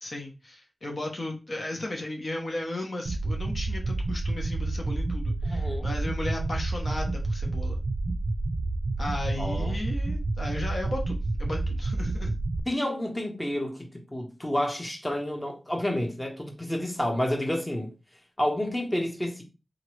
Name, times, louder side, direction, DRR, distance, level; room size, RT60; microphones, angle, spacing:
voice 1, 0.0-7.8 9.0-12.4, left 1 dB, 55° left, 0.9 m, -35 dB
sound 1, 3.1-12.6, right 2 dB, 65° right, 0.4 m, -29 dB
voice 2, 5.5-5.9 9.4-9.8 12.7-17.9 18.4-19.4, left 1 dB, 15° left, 1.0 m, -30 dB
3.8 x 2.9 x 3.1 m
wide cardioid pair, 80°, 0 cm